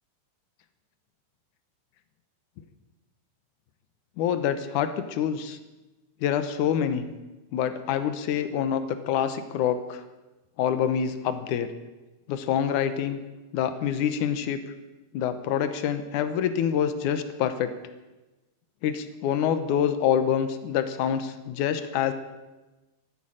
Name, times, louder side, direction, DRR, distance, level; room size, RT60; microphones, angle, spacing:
voice 1, 4.2-5.6 6.2-7.0 7.5-10.0 10.6-11.7 12.3-13.2 13.5-14.6 15.1-17.7 18.8-22.1, left 9 dB, 75° left, 10 dB, 1.9 m, -26 dB
13.5 x 12.0 x 8.9 m, 1.1 s
omnidirectional pair, 4.7 m